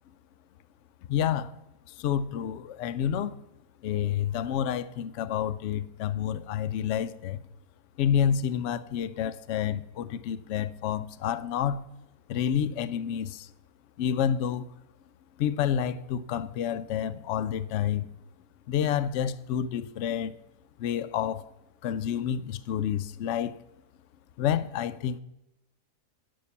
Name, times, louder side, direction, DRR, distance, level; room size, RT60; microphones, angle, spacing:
voice 1, 1.1-1.6 1.9-3.4 3.8-7.4 8.0-11.8 12.3-13.5 14.0-14.7 15.4-18.1 18.7-20.3 20.8-21.4 21.8-23.6 24.4-25.2, left 9 dB, 70° left, 0.7 m, -29 dB
11.5 x 5.5 x 7.1 m
omnidirectional pair, 1.7 m